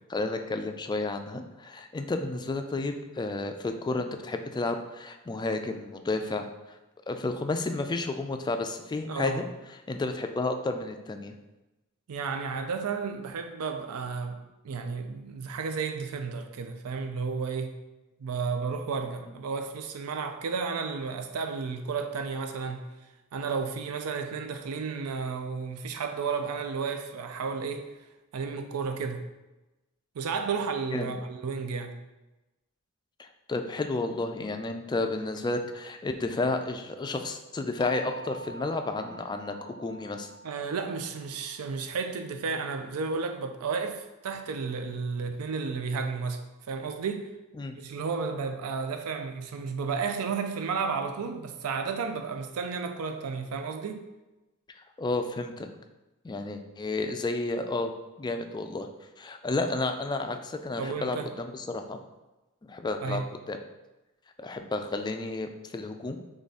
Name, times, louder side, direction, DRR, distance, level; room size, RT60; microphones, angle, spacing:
voice 1, 0.1-6.8 7.1-9.4 9.9-11.3 30.9-31.2 33.2-40.3 47.6-47.7 55.0-55.7 56.2-57.9 58.2-58.9 59.2-62.0 62.7-63.2 63.5-63.6 64.4-66.2, left 2 dB, 20° left, 0.3 m, -31 dB
voice 2, 9.1-9.4 12.1-14.4 14.6-17.7 18.2-22.8 23.3-27.9 28.3-29.2 30.2-32.0 40.4-46.4 46.7-47.3 47.7-54.1 60.8-61.3 63.0-63.3, right 5 dB, 75° right, 0.4 m, -32 dB
sound 1, 37.8-43.8, equal, 75° left, 0.5 m, -48 dB
3.6 x 3.3 x 4.1 m
head